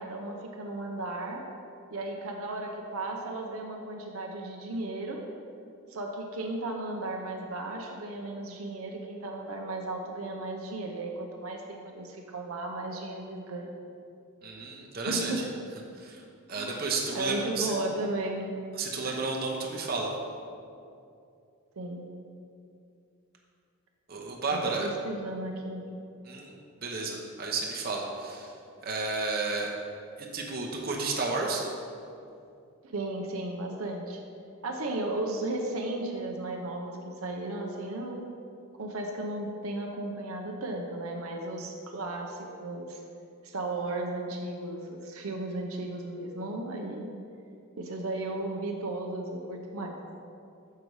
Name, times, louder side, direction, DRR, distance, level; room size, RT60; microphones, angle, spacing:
voice 1, 0.0-1.4 1.9-5.2 5.9-13.8 15.1-15.5 16.5-16.8 17.1-18.5 19.0-19.2 21.8-22.2 24.5-25.9 32.8-34.2 34.6-38.3 38.8-43.0 43.4-47.1 47.8-50.0, right 2 dB, 75° right, 1 dB, 0.7 m, -35 dB
voice 2, 14.4-15.5 16.0-16.2 16.5-17.7 18.7-20.1 24.1-24.9 26.2-26.5 26.8-28.5 28.8-29.7 30.2-31.6, right 3 dB, 45° right, -1 dB, 0.8 m, -32 dB
6.6 x 5.3 x 4.7 m, 2.5 s
head